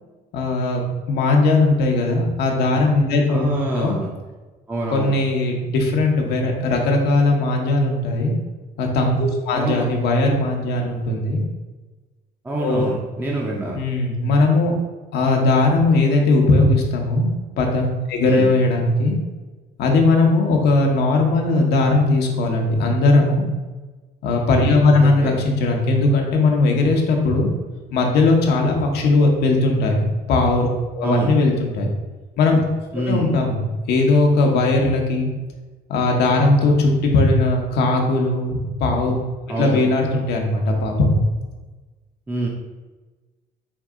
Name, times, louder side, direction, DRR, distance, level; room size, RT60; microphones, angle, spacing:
voice 1, 0.3-3.5 3.8-3.9 4.9-8.3 8.8-11.4 12.6-12.9 13.7-14.7 15.1-17.3 17.6-19.1 19.8-23.4 24.2-27.5 27.9-31.9 32.4-32.6 33.1-33.6 33.9-35.3 35.9-39.1 39.6-41.2, left 2 dB, 75° left, 1 dB, 0.8 m, -18 dB
voice 2, 3.3-4.1 4.7-5.1 9.5-9.9 12.4-13.8 18.2-18.5 25.0-25.4 31.0-31.3 32.9-33.4 39.5-39.8 42.3-42.5, right 2 dB, 10° right, -3 dB, 0.6 m, -25 dB
4.6 x 2.8 x 3.5 m, 1.2 s
cardioid pair, 110°, 17 cm